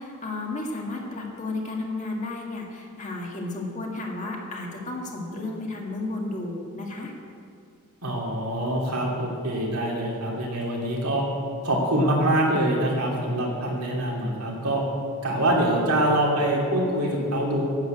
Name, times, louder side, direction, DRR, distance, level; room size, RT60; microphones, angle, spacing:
voice 1, 0.0-7.1, left 2 dB, 35° left, -1 dB, 1.8 m, -33 dB
voice 2, 8.0-11.2 11.6-14.8 15.2-17.7, right 1 dB, 85° right, -2 dB, 2.8 m, -24 dB
10.5 x 8.2 x 8.0 m, 2.5 s
head